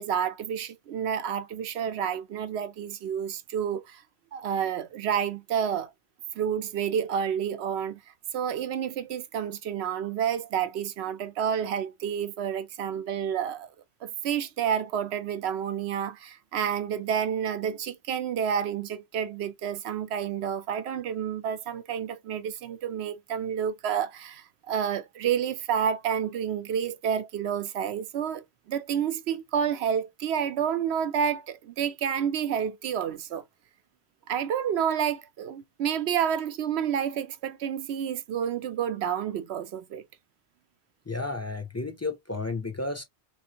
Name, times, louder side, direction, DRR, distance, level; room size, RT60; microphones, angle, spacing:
voice 1, 0.0-4.0 4.3-5.9 6.4-8.0 8.3-13.7 14.0-33.4 34.3-40.0, right 8 dB, 85° right, 0.9 m, -29 dB
voice 2, 41.1-43.0, left 3 dB, 20° left, 0.4 m, -32 dB
3.3 x 3.1 x 2.7 m
omnidirectional pair, 1.1 m